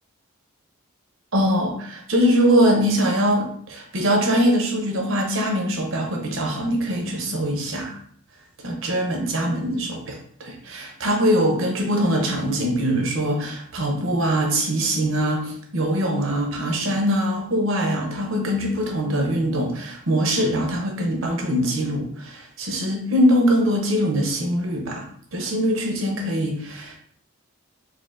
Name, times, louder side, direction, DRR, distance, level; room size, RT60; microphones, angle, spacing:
voice 1, 1.3-8.0 8.6-25.0 25.3-27.0, equal, 65° right, 1 dB, 0.8 m, -22 dB
4.3 x 2.6 x 2.5 m, 0.63 s
head